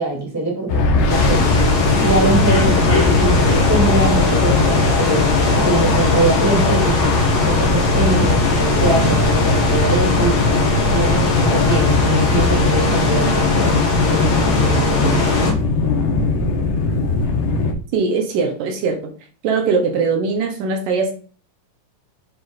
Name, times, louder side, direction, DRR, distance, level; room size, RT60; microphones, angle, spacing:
voice 1, 0.0-1.5 2.0-10.5 10.9-15.6, right 2 dB, 5° right, -2 dB, 2.3 m, -23 dB
sound 1, 0.7-17.7, left 2 dB, 80° left, 2.5 m, -19 dB
sound 2, 1.1-15.5, left 4 dB, 45° left, 1.3 m, -21 dB
voice 2, 17.9-19.0 19.4-21.1, right 4 dB, 80° right, 3 dB, 2.8 m, -20 dB
7.2 x 5.0 x 4.1 m, 0.40 s
omnidirectional pair, 3.7 m